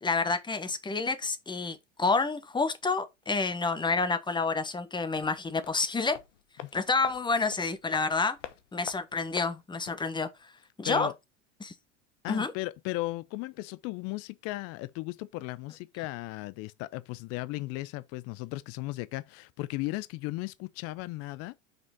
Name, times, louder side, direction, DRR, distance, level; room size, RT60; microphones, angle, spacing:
voice 1, 0.0-6.2 6.7-8.4 8.7-10.3 10.8-11.1 11.6-11.7 12.3-12.5, left 4 dB, 10° left, 1.1 m, -29 dB
sound 1, 5.1-10.1 10.4-10.5, left 10 dB, 80° left, 1.0 m, -46 dB
voice 2, 12.2-21.5, left 19 dB, 40° left, 0.5 m, -36 dB
6.1 x 4.9 x 4.3 m
hypercardioid pair, 95°, 36 cm